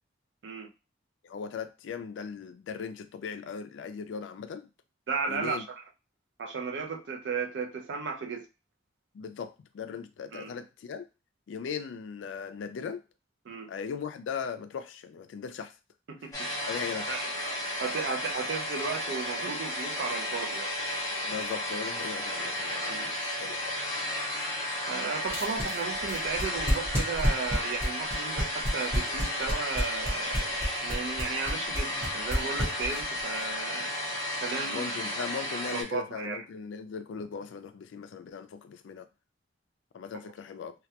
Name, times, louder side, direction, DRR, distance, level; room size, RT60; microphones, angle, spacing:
voice 1, 1.2-4.7 5.3-5.6 9.1-11.1 11.5-13.0 13.7-15.7 16.7-17.1 21.2-23.7 34.6-39.1 39.9-40.7, left 6 dB, 80° left, 0.3 m, -38 dB
voice 2, 5.1-5.8 6.4-8.5 10.3-10.5 13.5-13.7 16.1-16.5 17.1-17.3 17.8-20.7 22.9-23.1 24.9-30.5 30.8-33.9 34.4-35.2 35.5-36.4, right 4 dB, 75° right, 0.4 m, -35 dB
sound 1, 16.3-35.8, left 1 dB, 20° left, 0.6 m, -33 dB
sound 2, 25.3-33.2, equal, 15° right, 0.8 m, -28 dB
2.3 x 2.2 x 2.7 m
head